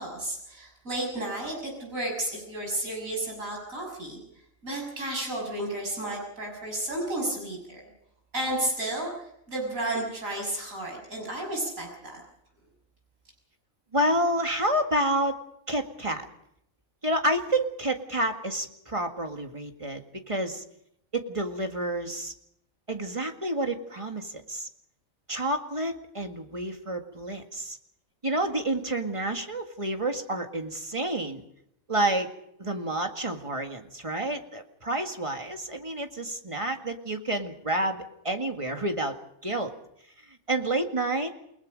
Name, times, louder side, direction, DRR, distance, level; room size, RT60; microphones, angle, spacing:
voice 1, 0.0-4.2 4.6-7.8 8.3-12.2, right 1 dB, 80° right, 0 dB, 7.1 m, -32 dB
voice 2, 13.9-15.4 15.7-16.3 17.0-20.6 21.1-22.3 22.9-24.7 25.3-27.8 28.2-31.4 31.9-32.3 32.6-39.2 39.4-39.7 40.5-41.3, right 1 dB, 25° right, 5 dB, 1.8 m, -29 dB
29.0 x 19.0 x 5.2 m, 0.75 s
omnidirectional pair, 1.4 m